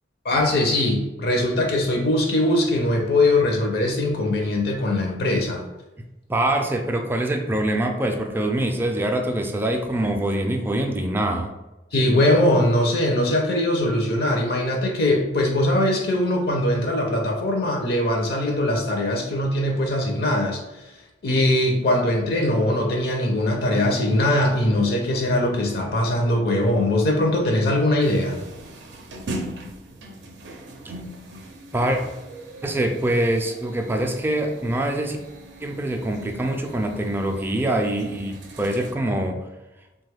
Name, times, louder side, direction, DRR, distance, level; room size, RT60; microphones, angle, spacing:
voice 1, 0.2-5.6 11.9-20.9 21.2-28.4, left 1 dB, 60° left, 1 dB, 0.5 m, -21 dB
voice 2, 6.3-11.5 31.7-32.0 32.6-35.2 35.6-39.4, right 1 dB, 15° right, 3 dB, 0.3 m, -24 dB
sound 1, 28.0-38.9, right 1 dB, 80° right, 0.5 m, -40 dB
3.0 x 2.2 x 3.3 m, 1.0 s
head